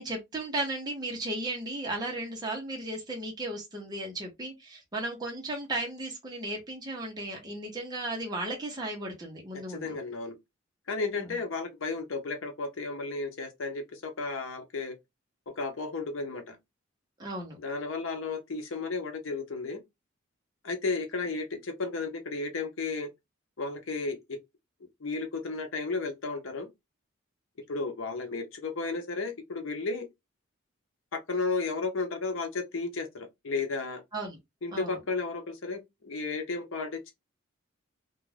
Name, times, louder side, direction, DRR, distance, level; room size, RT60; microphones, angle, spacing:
voice 1, 0.0-10.0 17.2-17.6 34.1-34.4 34.7-35.0, right 2 dB, 20° right, 0.7 m, -35 dB
voice 2, 9.5-10.4 10.9-15.0 15.5-16.6 17.6-19.8 20.6-23.1 23.6-24.4 25.0-26.7 27.7-30.1 31.1-34.0 34.6-37.1, left 3 dB, 75° left, 0.7 m, -33 dB
2.4 x 2.2 x 3.2 m
head